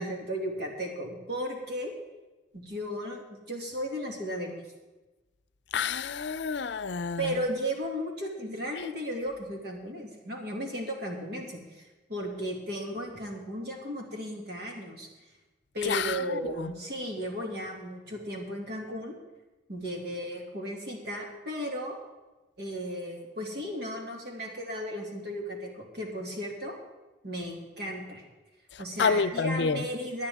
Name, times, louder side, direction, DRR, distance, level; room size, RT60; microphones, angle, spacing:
voice 1, 0.0-1.9 2.5-4.6 7.2-15.1 15.7-19.1 19.7-22.0 22.6-26.8 27.2-28.2 28.8-30.3, equal, 60° right, 2.4 m, -35 dB
voice 2, 5.7-7.3 15.8-16.7 29.0-29.9, left 5 dB, 70° left, 0.5 m, -29 dB
18.5 x 10.5 x 3.6 m
head